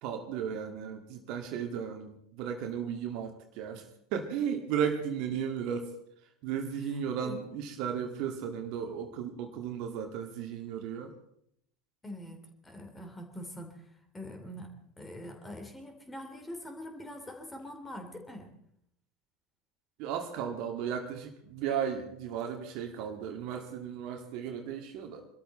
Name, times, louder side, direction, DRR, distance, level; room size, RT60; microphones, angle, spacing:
voice 1, 0.0-3.8 4.1-5.9 6.4-11.1 20.0-25.3, right 8 dB, 50° right, 5 dB, 2.0 m, -35 dB
voice 2, 12.0-18.5, left 1 dB, 15° left, 5 dB, 3.1 m, -44 dB
24.0 x 13.5 x 4.3 m, 0.72 s
figure-of-eight pair, 75°, 0 cm